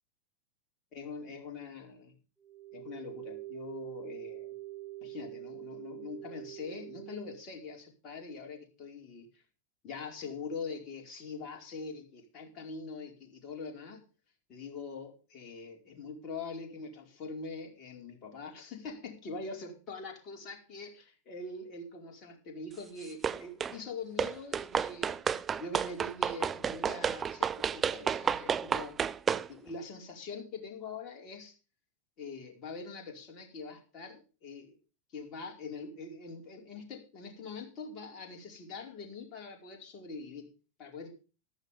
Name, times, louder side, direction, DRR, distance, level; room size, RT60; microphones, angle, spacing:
voice 1, 0.9-2.1 2.7-4.5 5.0-9.4 9.8-14.0 14.5-25.3 25.6-29.0 29.5-31.5 32.2-34.8 35.1-40.4 40.8-41.1, left 4 dB, 35° left, 2 dB, 4.7 m, -43 dB
sound 1, 2.4-7.4, right 17 dB, 5° left, 7.9 m, -45 dB
sound 2, 23.2-23.8 24.2-29.5, right 7 dB, 20° right, 0.5 m, -31 dB
14.5 x 12.0 x 3.5 m, 0.34 s
figure-of-eight pair, 90°, 0 cm